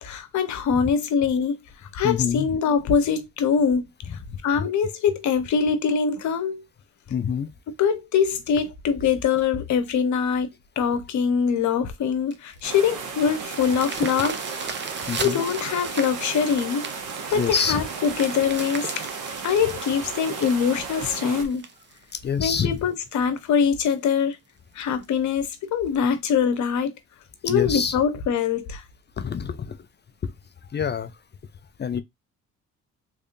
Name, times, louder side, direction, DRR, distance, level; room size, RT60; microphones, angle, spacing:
voice 1, 0.0-1.6 1.9-3.9 4.4-6.6 7.8-10.5 10.8-14.4 15.2-16.9 17.3-18.9 19.4-21.6 22.4-24.4 24.7-26.9 27.4-28.8, left 6 dB, 70° left, 1.0 m, -23 dB
voice 2, 2.0-2.5 7.1-7.5 15.1-15.4 17.4-17.8 22.2-22.7 27.5-28.0 29.2-29.8 30.2-30.3 30.7-31.1 31.8-32.0, left 6 dB, 35° left, 0.5 m, -25 dB
sound 1, 12.3-22.8 23.4-23.5 23.9-24.0 24.3-24.4 24.8-25.1 25.9-26.0, right 5 dB, 35° right, 0.8 m, -37 dB
sound 2, 12.6-21.4, right 5 dB, 90° right, 1.1 m, -35 dB
3.4 x 3.3 x 2.5 m
cardioid pair, 90°, 30 cm